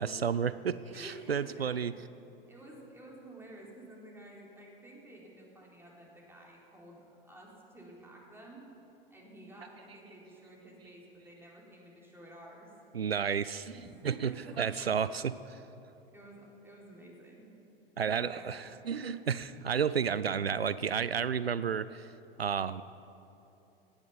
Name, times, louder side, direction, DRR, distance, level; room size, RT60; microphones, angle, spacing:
voice 1, 0.0-1.9 12.9-15.2 18.0-22.1 22.4-22.8, right 7 dB, 85° right, 16 dB, 0.4 m, -32 dB
voice 2, 0.9-1.9 2.5-8.7 9.1-12.7 13.7-15.2 16.1-17.5 18.1-19.2, right 1 dB, 10° right, -3 dB, 4.2 m, -51 dB
17.5 x 10.5 x 7.2 m, 2.9 s
figure-of-eight pair, 85°, 29 cm